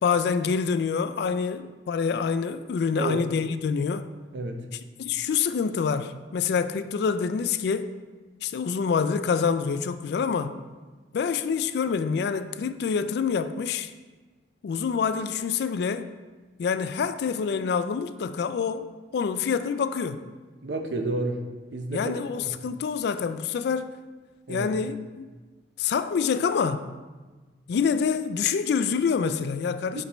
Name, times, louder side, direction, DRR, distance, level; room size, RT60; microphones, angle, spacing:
voice 1, 0.0-4.1 5.0-7.9 8.4-10.5 11.1-13.9 14.6-16.1 16.6-20.2 21.9-23.9 24.5-25.3 25.8-27.0 27.7-30.0, left 6 dB, 65° left, 0.3 m, -26 dB
voice 2, 3.0-3.3 4.3-4.6 20.6-21.4 21.7-22.6 24.5-24.7 29.9-30.0, right 2 dB, 80° right, 0.7 m, -31 dB
8.3 x 4.2 x 3.0 m
head